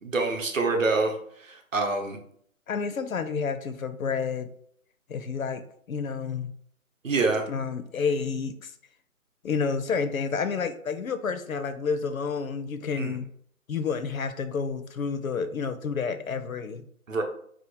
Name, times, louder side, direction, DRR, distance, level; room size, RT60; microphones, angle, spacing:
voice 1, 0.0-1.2 1.4-2.2 7.0-7.4 13.0-13.2 17.1-17.2, right 3 dB, 60° right, 3 dB, 0.8 m, -26 dB
voice 2, 2.7-4.5 5.1-6.5 7.5-8.7 9.4-13.3 13.7-16.8, left 5 dB, 70° left, 10 dB, 0.5 m, -30 dB
2.8 x 2.3 x 4.0 m, 0.64 s
figure-of-eight pair, 175°, 43 cm